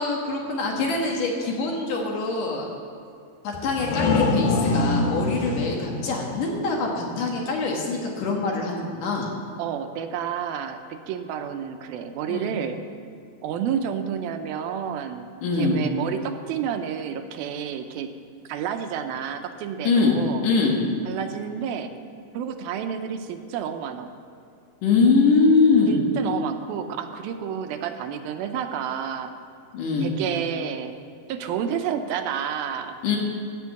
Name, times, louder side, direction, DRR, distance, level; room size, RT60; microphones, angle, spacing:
voice 1, 0.0-2.6 3.4-9.3 12.3-12.5 15.4-15.8 19.8-20.1 20.4-20.8 24.8-26.0 29.7-30.1 33.0-33.2, left 4 dB, 60° left, 0 dB, 2.8 m, -23 dB
sound 1, 3.5-7.1, left 3 dB, 85° left, 1.7 m, -25 dB
voice 2, 9.6-12.8 13.4-18.1 18.5-20.4 21.1-21.9 22.3-24.1 25.9-29.3 30.0-30.9 31.3-33.0, right 8 dB, 75° right, 6 dB, 2.3 m, -30 dB
15.5 x 6.1 x 8.3 m, 2.5 s
omnidirectional pair, 4.7 m